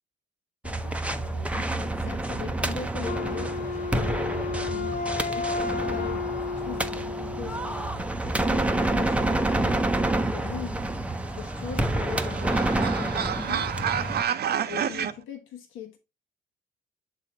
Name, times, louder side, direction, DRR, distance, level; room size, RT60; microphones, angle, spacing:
voice 1, 0.6-7.8 8.2-10.8 11.3-13.8 14.7-16.0, left 8 dB, 80° left, 1.1 m, -41 dB
sound 1, 0.6-14.2, right 1 dB, 5° right, 0.6 m, -28 dB
Wind instrument woodwind instrument, 3.0-8.0, left 4 dB, 45° left, 0.9 m, -32 dB
sound 2, 11.2-15.1, right 9 dB, 55° right, 0.6 m, -30 dB
6.8 x 3.8 x 4.0 m
cardioid pair, 90°, 20 cm